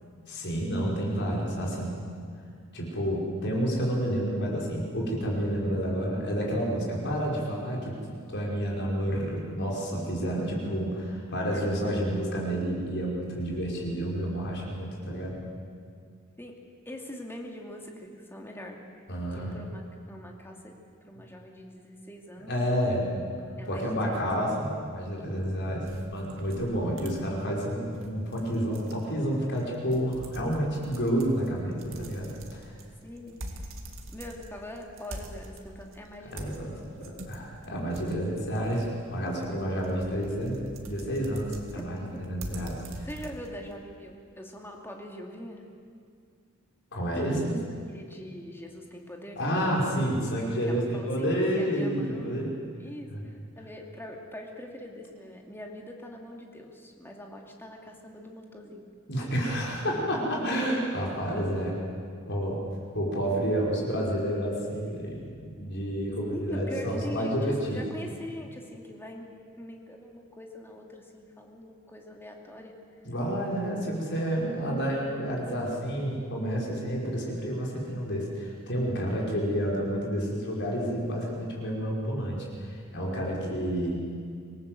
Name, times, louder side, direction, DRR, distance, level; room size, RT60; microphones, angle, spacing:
voice 1, 0.3-2.0 2.7-15.4 19.1-19.6 22.5-23.3 23.7-32.6 36.3-36.7 37.0-43.1 46.9-47.5 49.4-52.5 53.1-53.2 59.1-61.8 62.3-62.6 62.9-67.8 73.0-82.5 82.9-84.0, equal, 55° left, -2 dB, 5.5 m, -30 dB
voice 2, 16.9-18.8 19.3-22.5 23.6-24.6 33.0-33.8 34.1-36.7 41.7-42.3 43.1-45.6 47.1-49.4 50.6-52.4 52.8-58.9 59.9-60.3 66.3-73.0, left 1 dB, 10° left, 1 dB, 2.6 m, -43 dB
sound 1, 25.8-43.8, right 1 dB, 65° right, 2.3 m, -45 dB
26.0 x 18.5 x 7.9 m, 2.2 s
head